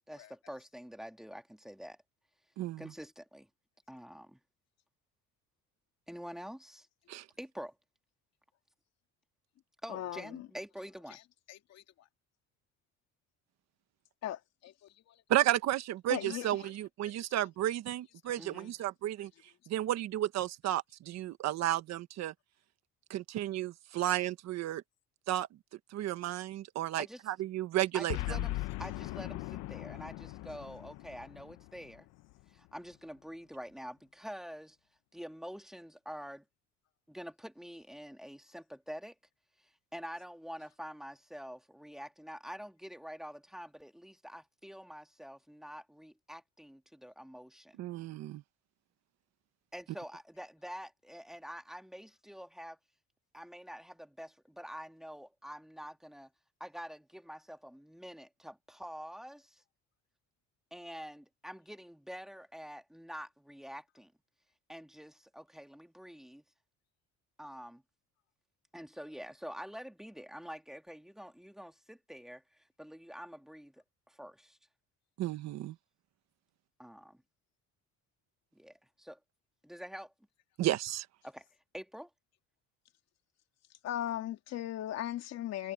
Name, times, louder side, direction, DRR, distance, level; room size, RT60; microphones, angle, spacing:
voice 1, 0.1-2.0 2.8-3.5 3.9-4.4 6.1-6.9 7.4-7.7 9.8-11.2 18.4-18.7 27.0-27.2 27.9-32.1 32.5-34.8 35.1-36.4 37.1-39.2 39.6-47.8 49.7-52.8 53.3-56.3 56.6-59.6 60.7-64.1 64.7-66.4 67.4-67.8 68.7-74.6 76.8-77.2 78.5-79.2 79.6-80.1 81.2-81.5 81.7-82.1, equal, ahead, 2.2 m, -47 dB
voice 2, 2.6-2.9 7.1-7.2 15.3-19.3 19.7-22.3 23.1-24.8 25.3-25.5 25.9-28.4 47.8-48.4 75.2-75.7 80.6-81.1, right 13 dB, 60° right, 1.4 m, -33 dB
voice 3, 9.9-10.5 11.1-11.2 11.5-11.8 14.2-14.4 15.3-15.6 16.1-16.7 17.4-17.5 18.3-18.7 19.2-19.3 83.8-85.7, left 12 dB, 60° left, 2.6 m, -38 dB
Boom, 28.1-32.5, left 18 dB, 80° left, 1.0 m, -39 dB
cardioid pair, 145°, 30 cm